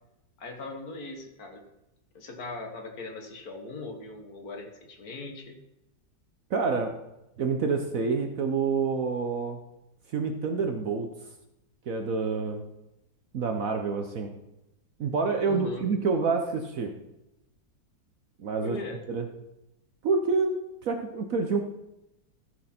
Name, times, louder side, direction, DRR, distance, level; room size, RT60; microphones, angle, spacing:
voice 1, 0.4-1.6 2.1-5.6 15.5-15.9 18.6-19.0, left 3 dB, 55° left, 4 dB, 1.7 m, -39 dB
voice 2, 6.5-6.9 7.4-9.6 10.1-11.1 11.9-12.6 13.3-14.3 15.0-16.9 18.4-18.8 19.1-19.3 20.0-21.6, right 4 dB, 60° right, 5 dB, 1.0 m, -27 dB
14.0 x 6.3 x 4.3 m, 0.92 s
omnidirectional pair, 2.0 m